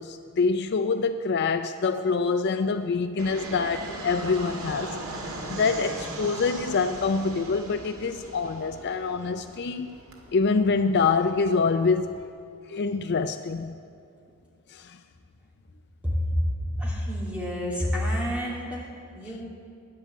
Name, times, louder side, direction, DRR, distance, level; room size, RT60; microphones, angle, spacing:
voice 1, 0.0-5.0 5.5-9.9 10.3-12.2 12.7-13.7 14.7-15.0, left 4 dB, 50° left, 9 dB, 0.4 m, -25 dB
Fixed-wing aircraft airplane, 3.2-12.2, right 2 dB, 80° right, 2.0 m, -39 dB
voice 2, 16.0-19.5, equal, 5° right, -4 dB, 2.7 m, -28 dB
10.5 x 10.5 x 8.3 m, 2.4 s
head